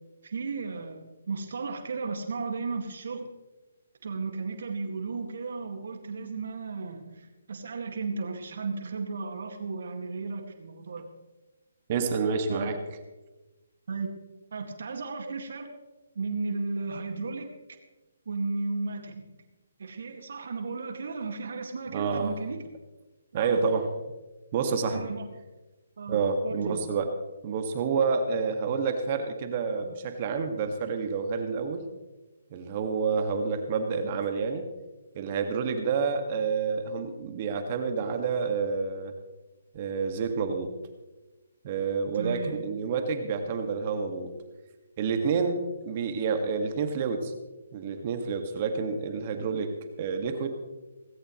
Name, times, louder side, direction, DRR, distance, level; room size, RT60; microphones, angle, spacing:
voice 1, 0.2-3.3 4.0-11.1 12.5-12.8 13.9-14.1 14.5-15.7 16.2-17.5 18.3-19.4 19.8-22.6 23.4-23.6 24.9-25.3 26.0-26.8 42.1-42.6, right 4 dB, 65° right, 5 dB, 2.1 m, -34 dB
voice 2, 11.9-12.8 21.9-22.4 23.3-23.9 24.5-25.1 26.1-27.1 27.4-31.8 32.5-34.7 35.1-39.1 39.7-40.8 41.6-44.3 45.0-47.3 47.7-49.7 50.0-50.5, right 5 dB, 40° right, 6 dB, 1.9 m, -29 dB
18.5 x 16.5 x 3.2 m, 1.1 s
hypercardioid pair, 145°, 0 cm